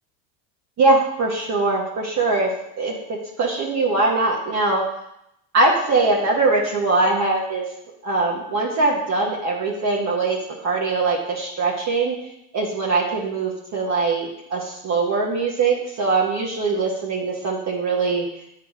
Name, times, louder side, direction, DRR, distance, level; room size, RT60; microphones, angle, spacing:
voice 1, 0.8-2.5 2.8-3.0 3.4-4.8 5.5-7.7 8.0-10.4 10.6-12.1 12.5-18.3, right 3 dB, 35° right, -2 dB, 1.4 m, -21 dB
8.4 x 3.9 x 4.9 m, 0.81 s
supercardioid pair, 105°, 49 cm